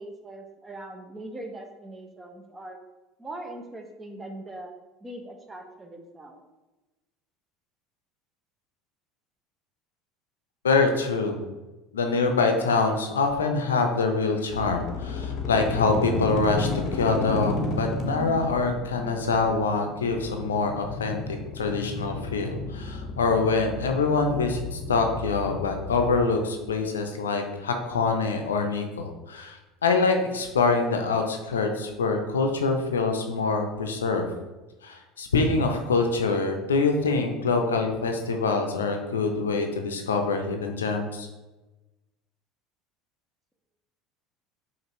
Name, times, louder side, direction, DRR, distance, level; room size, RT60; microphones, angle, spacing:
voice 1, 0.0-2.8 3.2-4.7 5.0-6.4, right 1 dB, 20° right, 4 dB, 0.7 m, -41 dB
voice 2, 10.6-11.4 11.9-34.2 34.8-41.3, left 4 dB, 85° left, 4 dB, 0.5 m, -25 dB
sound 1, 14.5-26.3, left 3 dB, 50° left, 0.7 m, -32 dB
5.1 x 2.5 x 3.0 m, 1.1 s
hypercardioid pair, 75°, 0 cm